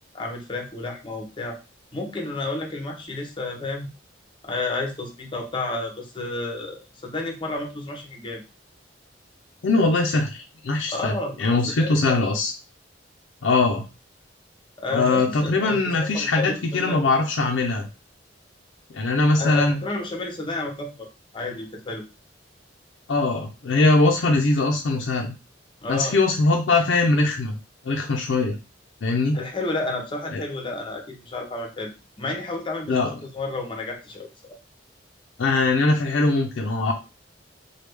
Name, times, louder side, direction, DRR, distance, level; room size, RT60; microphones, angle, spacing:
voice 1, 0.1-1.6 1.9-3.9 4.4-8.4 10.9-12.2 14.8-17.0 19.4-21.1 21.3-22.0 25.8-26.2 29.3-33.0 33.3-34.3, left 2 dB, 25° left, 2 dB, 0.7 m, -31 dB
voice 2, 9.6-12.5 13.4-13.8 14.9-17.9 18.9-19.8 23.1-25.3 25.9-27.6 27.8-28.6 29.0-29.4 30.3-30.4 32.9-33.1 35.4-36.9, left 3 dB, 80° left, 1 dB, 0.5 m, -21 dB
3.1 x 2.3 x 3.3 m, 0.30 s
head